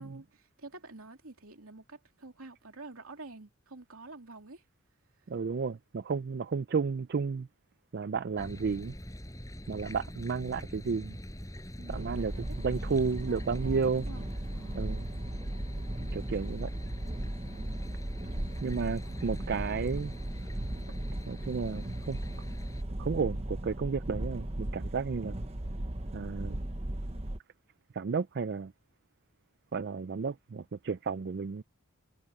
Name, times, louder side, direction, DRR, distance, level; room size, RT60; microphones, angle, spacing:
voice 1, 0.0-4.6 11.8-14.2 14.5-15.1 18.5-19.5, right 2 dB, 70° right, 3.1 m, -50 dB
voice 2, 5.3-7.5 7.9-8.9 9.7-11.2 11.9-12.3 12.6-14.1 14.7-15.1 16.1-16.8 18.6-20.1 21.3-22.2 23.0-25.4 26.1-26.6 27.9-28.7 29.7-31.6, right 5 dB, 45° right, 0.4 m, -32 dB
sound 1, 8.4-22.8, equal, 15° left, 7.2 m, -44 dB
sound 2, 11.9-27.4, right 1 dB, 30° right, 1.0 m, -37 dB
head